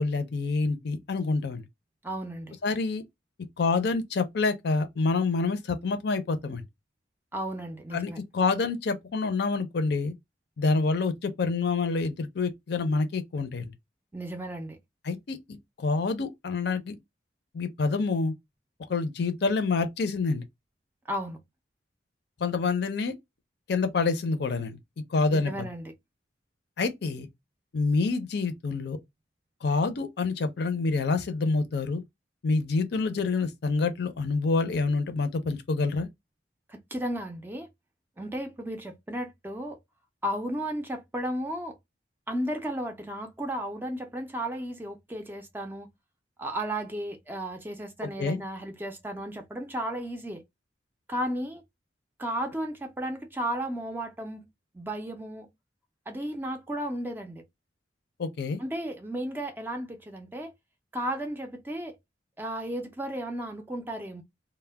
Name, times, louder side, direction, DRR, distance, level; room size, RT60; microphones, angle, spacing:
voice 1, 0.0-1.7 2.6-3.0 3.6-6.6 7.9-10.1 10.6-13.7 15.0-17.0 17.5-18.3 18.9-20.4 22.4-23.1 23.7-24.8 25.1-25.7 26.8-27.3 27.7-29.0 29.6-32.0 32.4-36.1 48.0-48.4 58.2-58.6, left 4 dB, 60° left, 0.5 m, -27 dB
voice 2, 2.0-2.6 7.3-8.2 14.1-14.8 21.1-21.4 25.3-25.9 36.7-37.7 38.2-39.8 40.2-41.8 42.3-45.9 46.4-50.4 51.1-51.6 52.2-54.4 54.7-55.5 56.1-57.4 58.6-60.5 60.9-62.0 62.4-64.2, right 1 dB, 10° right, 0.4 m, -34 dB
2.1 x 2.1 x 3.3 m
head